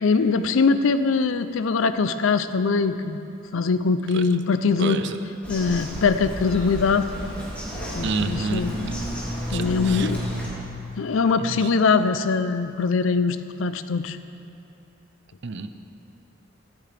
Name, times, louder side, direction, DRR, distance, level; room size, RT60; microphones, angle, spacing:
voice 1, 0.0-3.2 3.5-5.0 5.5-7.1 7.9-8.9 9.5-10.2 11.0-14.2, left 4 dB, 70° left, 11 dB, 0.5 m, -22 dB
Bird vocalization bird call bird song, 5.4-10.5, equal, 5° left, 2.9 m, -32 dB
voice 2, 8.0-8.6 9.5-10.1 15.4-15.7, right 4 dB, 60° right, 9 dB, 0.6 m, -28 dB
13.5 x 13.5 x 3.4 m, 2.8 s
head